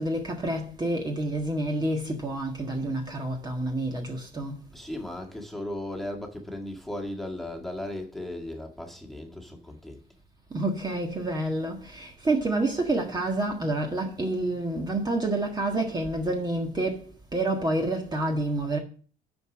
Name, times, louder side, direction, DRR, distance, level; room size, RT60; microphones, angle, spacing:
voice 1, 0.0-4.6 10.5-18.8, right 2 dB, 25° right, 1.6 m, -28 dB
voice 2, 4.7-10.0, left 1 dB, ahead, 1.9 m, -36 dB
9.4 x 4.8 x 6.1 m
cardioid pair, 110°, 17 cm